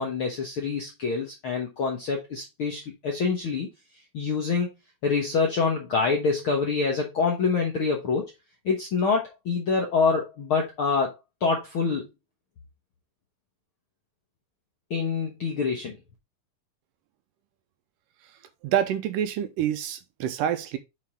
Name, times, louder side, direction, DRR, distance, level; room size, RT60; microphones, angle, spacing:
voice 1, 0.0-3.7 4.1-4.7 5.0-8.3 8.6-11.1 11.4-12.1 14.9-16.0, left 4 dB, 65° left, 1.3 m, -26 dB
voice 2, 18.6-20.8, right 10 dB, 80° right, 2.2 m, -27 dB
7.5 x 4.2 x 3.5 m
omnidirectional pair, 4.1 m